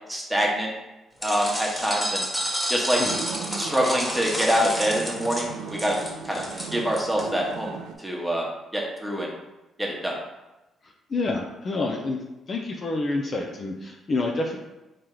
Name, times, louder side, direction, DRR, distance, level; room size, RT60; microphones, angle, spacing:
voice 1, 0.1-0.7 1.2-2.3 2.7-3.0 3.6-6.0 6.3-6.4 6.7-9.3 9.8-10.2, equal, 5° right, -2 dB, 1.1 m, -25 dB
sound 1, 1.2-7.2, equal, 15° left, 1.4 m, -30 dB
voice 2, 3.0-3.4 11.1-12.2 12.5-14.6, left 2 dB, 45° left, 2 dB, 0.6 m, -28 dB
sound 2, 3.0-7.9, right 5 dB, 90° right, 0.5 m, -38 dB
4.3 x 3.2 x 3.8 m, 1.0 s
cardioid pair, 90°, 0 cm